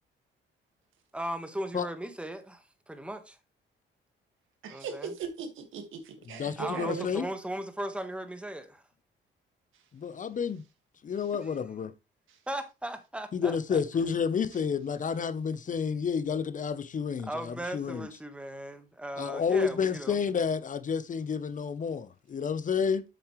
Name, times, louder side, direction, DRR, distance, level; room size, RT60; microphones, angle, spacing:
voice 1, 1.1-3.4 4.7-5.1 6.6-8.8 11.4-11.6 12.5-13.8 17.2-20.2, right 1 dB, 5° right, 1.4 m, -37 dB
voice 2, 4.6-7.0, right 6 dB, 80° right, 1.9 m, -38 dB
voice 3, 6.3-7.3 9.9-10.6 11.0-11.9 13.3-18.1 19.2-23.0, left 6 dB, 40° left, 0.7 m, -30 dB
8.1 x 7.1 x 3.1 m
cardioid pair, 90°, 20 cm